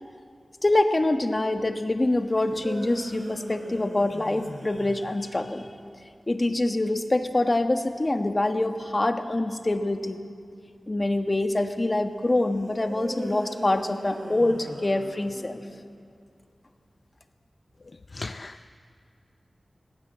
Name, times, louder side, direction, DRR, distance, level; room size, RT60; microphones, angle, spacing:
voice 1, 0.6-5.7 6.3-10.2 10.9-15.6, left 2 dB, 35° left, 7 dB, 1.4 m, -25 dB
sound 1, 2.4-5.6 12.8-15.7, right 1 dB, 85° right, 4.6 m, -39 dB
voice 2, 18.2-18.7, left 3 dB, 55° left, 10 dB, 0.5 m, -36 dB
21.0 x 17.0 x 7.5 m, 2.4 s
wide cardioid pair, 60°, 0 cm